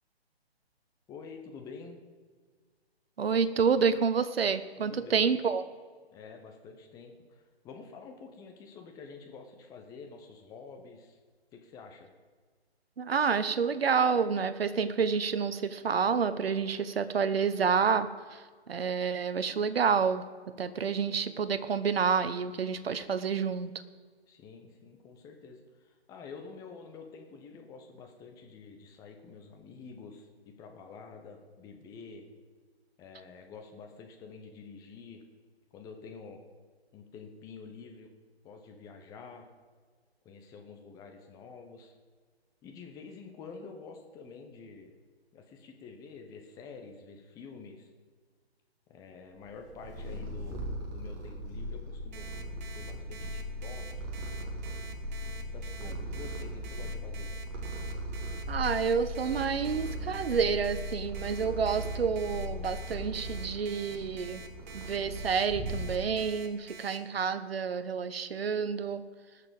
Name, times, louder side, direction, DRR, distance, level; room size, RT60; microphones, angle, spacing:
voice 1, 1.1-2.0 4.8-5.3 6.1-11.2 11.5-12.1 24.3-32.2 33.0-35.2 35.7-36.4 36.9-38.1 38.4-39.5 40.2-41.9 42.6-44.9 45.3-47.9 48.9-50.6 50.9-52.3 52.7-54.0 55.4-57.3, left 5 dB, 10° left, 4 dB, 0.8 m, -48 dB
voice 2, 3.2-5.6 13.0-20.2 20.6-23.7 55.8-55.9 58.5-64.4 64.7-69.0, right 6 dB, 65° right, 12 dB, 0.9 m, -29 dB
Purr, 49.4-66.3, equal, 25° right, 2.0 m, -38 dB
Alarm, 52.1-67.0, right 6 dB, 45° right, 1.3 m, -48 dB
18.5 x 6.8 x 5.3 m, 1.5 s
figure-of-eight pair, 135°, 32 cm